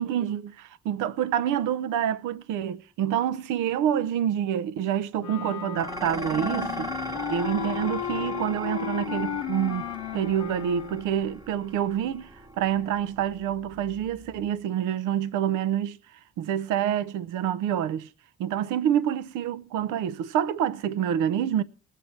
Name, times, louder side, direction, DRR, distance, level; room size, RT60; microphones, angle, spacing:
voice 1, 0.0-7.0 7.3-16.0 16.4-18.1 18.4-21.6, right 10 dB, 90° right, 0.6 m, -27 dB
Wind instrument woodwind instrument, 5.2-11.1, left 12 dB, 80° left, 0.7 m, -34 dB
Dishes pots and pans, 5.8-14.6, right 1 dB, 10° right, 1.0 m, -39 dB
19.5 x 7.4 x 4.3 m
cardioid pair, 90°, 30 cm